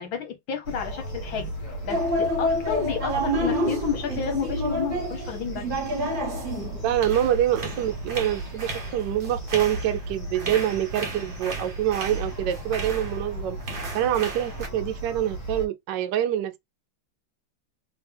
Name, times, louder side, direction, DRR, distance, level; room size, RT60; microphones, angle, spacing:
voice 1, 0.0-1.5 1.8-5.8, left 7 dB, 70° left, 1.6 m, -31 dB
sound 1, 0.6-15.7, right 1 dB, 40° left, 1.8 m, -35 dB
sound 2, 1.9-13.3 13.6-14.7, equal, 40° right, 0.8 m, -30 dB
voice 2, 6.8-13.6 13.9-16.6, right 11 dB, 75° right, 1.1 m, -26 dB
3.4 x 3.1 x 3.3 m
omnidirectional pair, 2.3 m